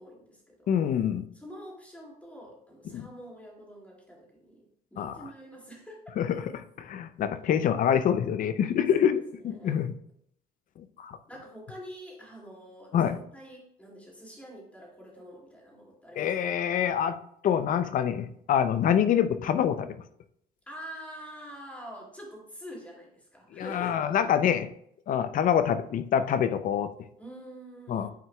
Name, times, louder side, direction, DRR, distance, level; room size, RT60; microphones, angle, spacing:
voice 1, 0.0-0.9 1.3-6.0 8.9-9.8 11.3-16.3 20.7-24.1 27.2-28.1, equal, 10° left, -2 dB, 2.3 m, -46 dB
voice 2, 0.7-1.3 2.9-3.1 5.0-5.2 6.2-10.0 11.0-11.2 12.9-13.1 16.2-17.2 17.4-20.0 23.5-24.7 25.1-26.9 27.9-28.1, left 9 dB, 55° left, 12 dB, 0.5 m, -26 dB
9.2 x 4.5 x 2.3 m, 0.68 s
cardioid pair, 110°, 17 cm